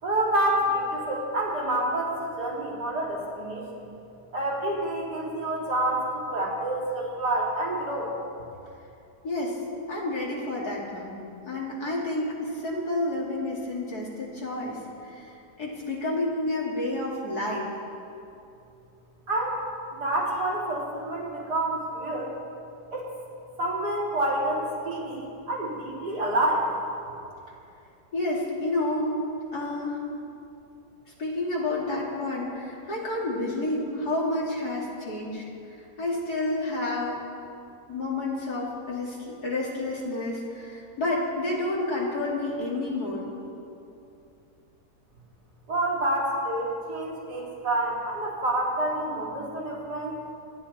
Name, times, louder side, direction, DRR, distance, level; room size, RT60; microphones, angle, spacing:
voice 1, 0.0-3.8 4.3-8.1 19.3-19.6 19.9-22.3 22.9-23.1 23.6-26.7 45.7-50.2, right 1 dB, 70° right, -6 dB, 4.3 m, -28 dB
voice 2, 9.2-9.6 9.9-11.2 11.5-17.7 28.1-29.2 29.5-30.0 31.2-35.4 35.7-37.2 37.9-43.3, left 2 dB, 60° left, -4 dB, 3.3 m, -30 dB
26.0 x 11.0 x 4.3 m, 2.7 s
omnidirectional pair, 1.8 m